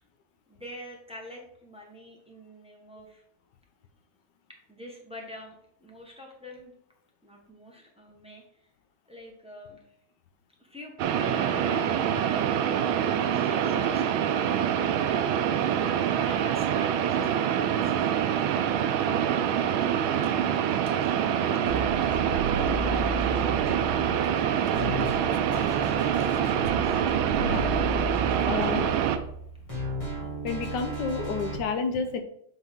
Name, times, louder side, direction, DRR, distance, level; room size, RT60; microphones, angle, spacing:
voice 1, 0.5-3.2 4.7-6.7 7.2-8.6 9.1-9.8 10.6-12.5 13.0-14.1 16.2-19.0 20.1-20.5 20.8-22.8 26.6-27.0, left 1 dB, 5° right, -1 dB, 0.8 m, -46 dB
sound 1, 11.0-29.2, right 9 dB, 90° right, 1.4 m, -25 dB
sound 2, 21.7-31.5, right 2 dB, 15° left, 2.0 m, -33 dB
voice 2, 24.2-24.8 27.4-27.7 28.4-28.9 30.4-32.2, left 5 dB, 65° left, 7 dB, 1.3 m, -31 dB
8.0 x 4.3 x 3.6 m, 0.73 s
omnidirectional pair, 2.2 m